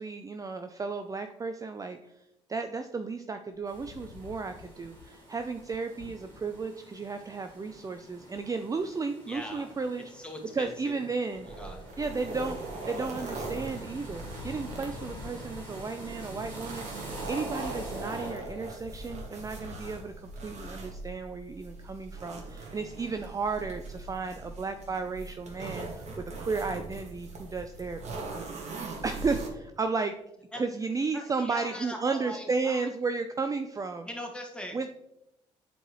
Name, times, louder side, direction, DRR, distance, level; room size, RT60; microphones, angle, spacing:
voice 1, 0.0-2.0 2.5-10.1 10.5-11.5 12.0-12.6 12.9-28.2 28.6-30.1 30.6-34.1 34.7-34.9, right 4 dB, 25° right, 8 dB, 0.5 m, -33 dB
Wind, 3.5-6.7 7.2-7.3 7.5-7.9 9.3-9.9 10.4-10.9 11.3-12.4 12.9-13.3 13.6-21.9, left 8 dB, 60° left, 0.4 m, -50 dB
sound 1, 3.7-18.3, right 2 dB, 80° right, 2.2 m, -47 dB
voice 2, 9.3-9.8 10.1-11.0 11.3-11.9 30.5-30.6 31.1-32.9 34.1-34.8, left 1 dB, 5° left, 1 dB, 1.8 m, -41 dB
sound 2, 11.4-29.5, right 3 dB, 50° right, 1.7 m, -41 dB
7.7 x 4.7 x 3.1 m, 0.85 s
hypercardioid pair, 55°, 15 cm